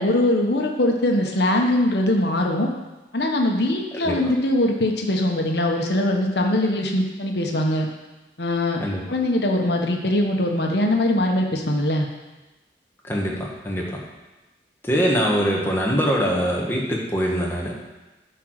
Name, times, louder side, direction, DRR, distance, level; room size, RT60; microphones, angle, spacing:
voice 1, 0.0-2.7 3.1-7.9 8.4-8.8 9.1-12.1, left 1 dB, 65° left, 2 dB, 1.3 m, -21 dB
voice 2, 3.9-4.3 8.8-9.0 13.0-14.0 14.8-17.7, equal, 15° left, -3 dB, 1.5 m, -23 dB
10.0 x 4.7 x 6.6 m, 1.1 s
head